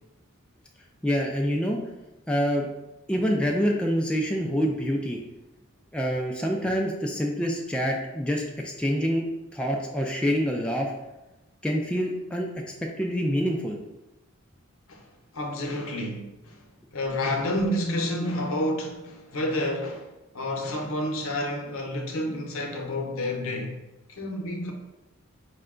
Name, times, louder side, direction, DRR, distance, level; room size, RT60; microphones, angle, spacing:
voice 1, 1.0-1.8 2.3-2.7 3.1-5.2 5.9-9.3 9.5-10.9 11.6-12.5 12.8-13.8, equal, 5° left, 0.3 m, -26 dB
voice 2, 14.9-16.7 16.9-24.7, left 1 dB, 65° left, 0.8 m, -30 dB
5.1 x 2.2 x 3.7 m
head